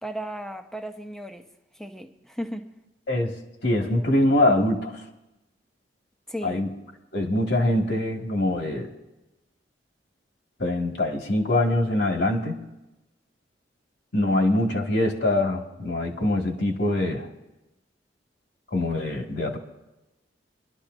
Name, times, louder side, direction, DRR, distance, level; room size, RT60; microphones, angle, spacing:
voice 1, 0.0-1.5 1.8-2.7 6.3-6.6, equal, 5° left, 6 dB, 0.8 m, -35 dB
voice 2, 3.6-5.0 6.4-6.7 7.1-8.9 10.6-12.6 14.1-17.3 18.7-19.6, left 1 dB, 70° left, 1 dB, 2.1 m, -23 dB
24.0 x 12.0 x 2.7 m, 0.98 s
head